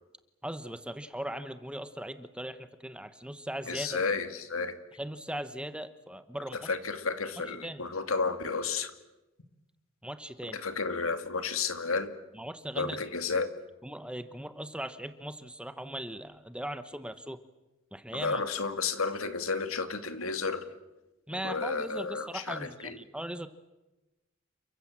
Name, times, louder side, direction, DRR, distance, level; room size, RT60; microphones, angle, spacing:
voice 1, 0.4-4.0 5.0-6.7 7.6-7.8 10.0-10.6 12.3-13.0 13.8-17.4 17.9-18.4 21.3-23.5, right 1 dB, 5° right, 10 dB, 1.0 m, -39 dB
voice 2, 3.7-4.8 6.5-8.9 10.5-12.2 12.8-13.5 18.1-20.6 21.4-23.0, left 4 dB, 80° left, 8 dB, 2.3 m, -32 dB
29.0 x 24.0 x 7.5 m, 1.1 s
head